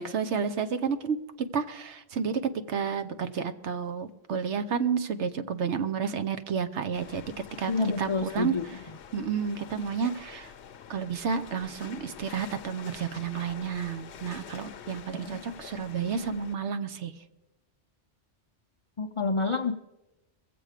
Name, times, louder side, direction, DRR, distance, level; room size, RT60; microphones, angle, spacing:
voice 1, 0.0-2.4 2.7-7.2 7.6-7.7 8.0-8.5 9.1-10.5 10.9-17.1, right 6 dB, 70° right, 10 dB, 1.1 m, -31 dB
sound 1, 6.9-16.6, left 8 dB, 70° left, 0.9 m, -47 dB
voice 2, 7.7-8.7 15.1-15.2 19.0-19.7, left 3 dB, 45° left, 4 dB, 0.4 m, -28 dB
22.0 x 7.7 x 5.0 m, 0.99 s
omnidirectional pair, 1.3 m